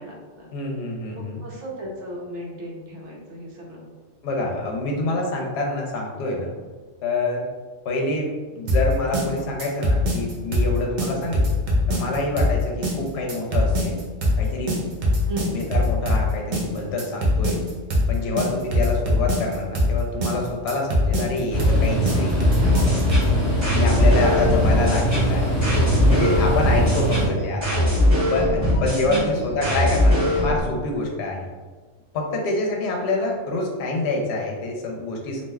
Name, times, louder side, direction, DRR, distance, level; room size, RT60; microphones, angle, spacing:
voice 1, 0.0-0.5 1.1-3.9 15.3-15.7 24.1-25.0 27.1-27.5 29.1-29.7, equal, 70° right, -2 dB, 1.0 m, -35 dB
voice 2, 0.5-1.4 4.2-6.5 7.0-7.5 7.8-11.4 11.9-14.0 14.4-14.8 15.5-17.6 18.1-22.5 23.7-25.6 26.1-27.8 28.3-31.5 32.1-35.4, left 2 dB, 65° left, 0 dB, 0.8 m, -26 dB
sound 1, 8.7-23.4, left 1 dB, 50° right, 0.6 m, -22 dB
sound 2, 21.5-27.3, equal, 25° left, 0.9 m, -22 dB
sound 3, 22.6-30.6, left 1 dB, 15° right, 1.4 m, -21 dB
3.2 x 2.4 x 2.2 m, 1.4 s
omnidirectional pair, 1.3 m